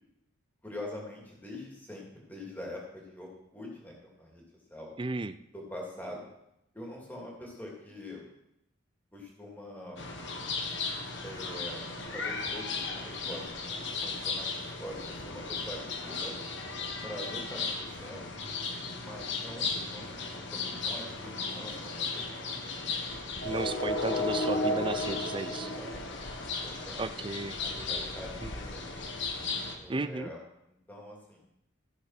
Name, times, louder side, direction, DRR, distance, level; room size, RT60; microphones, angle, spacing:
voice 1, 0.6-4.4 4.7-4.9 5.5-6.3 6.7-8.2 9.1-10.0 11.2-11.8 12.1-16.3 17.0-18.3 18.9-22.6 25.6-27.0 27.6-28.9 29.8-30.4 30.9-31.4, left 1 dB, 10° left, -2 dB, 2.7 m, -44 dB
voice 2, 5.0-5.4 23.4-25.7 27.0-27.6 28.4-28.5 29.9-30.3, right 3 dB, 25° right, 13 dB, 0.4 m, -34 dB
sound 1, 10.0-29.8, left 3 dB, 60° left, 1.4 m, -35 dB
14.5 x 6.3 x 5.8 m, 0.81 s
head